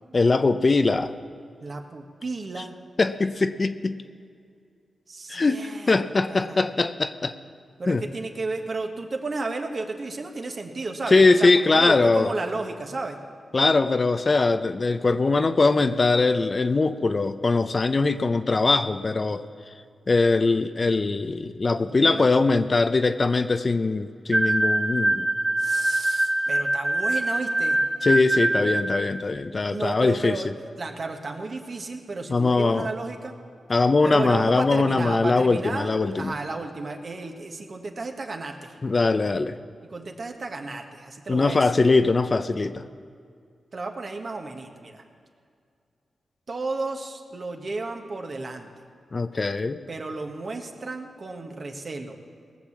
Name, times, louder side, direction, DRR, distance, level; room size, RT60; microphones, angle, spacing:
voice 1, 0.1-1.1 3.0-4.0 5.3-7.3 7.9-8.0 11.1-12.3 13.5-19.4 20.1-25.3 28.0-30.4 32.3-32.9 33.7-36.3 38.8-39.6 41.3-42.8 49.1-49.8, left 3 dB, 45° left, 10 dB, 0.6 m, -21 dB
voice 2, 1.6-2.8 5.1-6.0 6.3-6.7 7.8-13.2 21.8-22.3 25.6-27.8 29.7-33.3 34.0-35.9 36.2-38.8 39.8-41.7 43.7-45.0 46.5-48.7 49.9-52.2, right 3 dB, 55° right, 3 dB, 1.5 m, -33 dB
sound 1, 24.3-29.2, right 1 dB, 25° right, 0.8 m, -24 dB
19.0 x 6.6 x 7.3 m, 2.2 s
cardioid pair, 55°, 0 cm